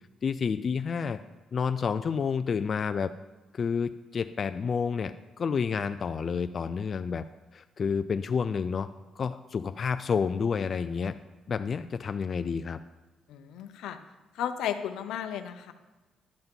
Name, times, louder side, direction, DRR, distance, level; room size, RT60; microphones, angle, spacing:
voice 1, 0.2-1.2 1.5-3.1 3.5-7.2 7.5-8.9 9.2-11.2 11.5-12.8, left 6 dB, 45° left, 10 dB, 0.3 m, -29 dB
voice 2, 13.3-14.0 14.3-15.7, left 9 dB, 85° left, 9 dB, 0.7 m, -34 dB
11.5 x 5.7 x 5.4 m, 1.2 s
cardioid pair, 90°, 0 cm